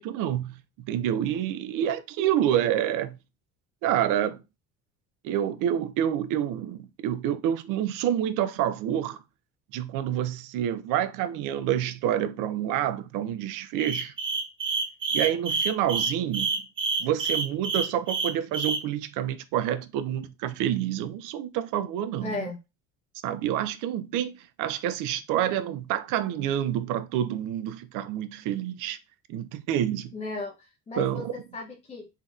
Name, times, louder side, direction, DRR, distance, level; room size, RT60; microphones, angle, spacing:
voice 1, 0.0-3.2 3.8-4.4 5.2-9.2 9.7-14.1 15.1-16.5 17.0-22.5 23.2-29.0 29.3-30.1 31.0-31.3, right 10 dB, 70° right, 0.5 m, -28 dB
sound 1, 13.8-18.8, right 4 dB, 35° right, 1.3 m, -27 dB
voice 2, 22.2-22.6 30.1-31.2 31.5-32.1, left 3 dB, 20° left, 0.6 m, -35 dB
3.4 x 2.8 x 2.3 m
supercardioid pair, 95°, 33 cm